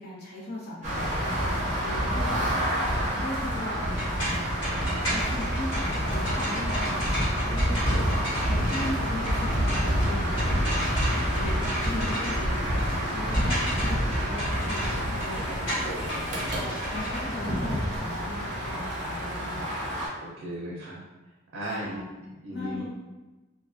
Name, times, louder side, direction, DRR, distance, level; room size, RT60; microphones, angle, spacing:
voice 1, 0.0-2.5 3.1-4.4 5.0-7.9 8.5-10.5 11.1-19.8 21.7-22.0 22.5-22.8, left 1 dB, 50° left, -7 dB, 0.7 m, -38 dB
sound 1, 0.8-20.1, equal, 35° right, 0.6 m, -28 dB
sound 2, 3.8-18.0, equal, 65° left, 1.4 m, -34 dB
voice 2, 7.9-8.2 20.2-21.0 21.5-22.8, right 1 dB, 80° right, -5 dB, 0.5 m, -37 dB
2.3 x 2.2 x 2.5 m, 1.1 s
head